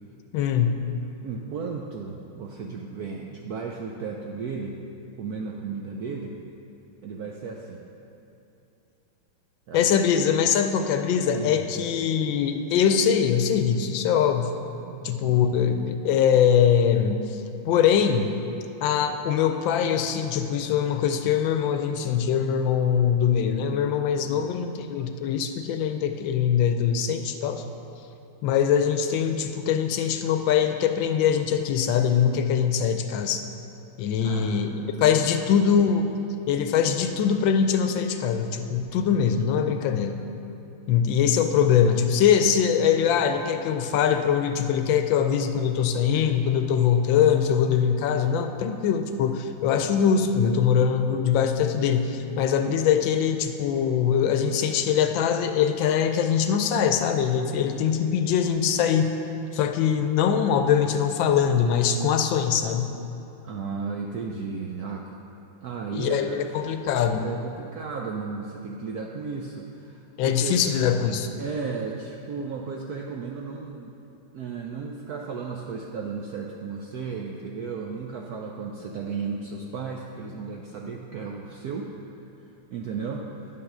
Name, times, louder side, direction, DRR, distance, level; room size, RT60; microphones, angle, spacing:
voice 1, 0.3-0.8 9.7-14.5 15.0-17.2 17.7-18.3 18.8-27.6 28.4-33.4 34.0-36.1 36.5-40.2 40.9-59.1 59.5-62.9 65.9-67.2 70.2-71.3, left 8 dB, 75° left, 7 dB, 1.3 m, -22 dB
voice 2, 1.2-4.8 5.2-6.3 7.0-7.8 9.7-9.9 11.2-11.9 14.9-15.5 24.1-24.5 34.2-35.5 63.4-65.2 65.6-66.5 66.8-66.9 67.2-70.6 71.4-73.9 74.3-81.9 82.7-83.2, right 5 dB, 75° right, 0 dB, 0.8 m, -34 dB
9.9 x 5.5 x 6.6 m, 2.8 s
omnidirectional pair, 2.2 m